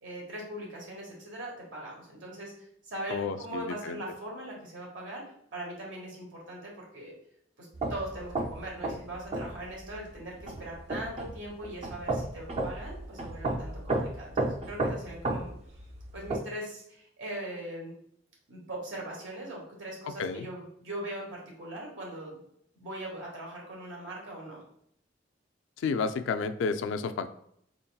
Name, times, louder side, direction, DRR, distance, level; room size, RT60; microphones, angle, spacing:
voice 1, 0.0-2.5 2.8-5.2 5.5-7.1 7.6-15.5 16.1-17.9 18.5-22.4 22.7-24.6, right 1 dB, 90° right, -3 dB, 1.5 m, -40 dB
voice 2, 3.1-4.0 20.2-20.5 25.8-27.3, left 5 dB, 80° left, 10 dB, 0.3 m, -31 dB
sound 1, 7.7-16.4, right 2 dB, 35° right, 0.4 m, -33 dB
4.0 x 3.8 x 2.2 m, 0.69 s
head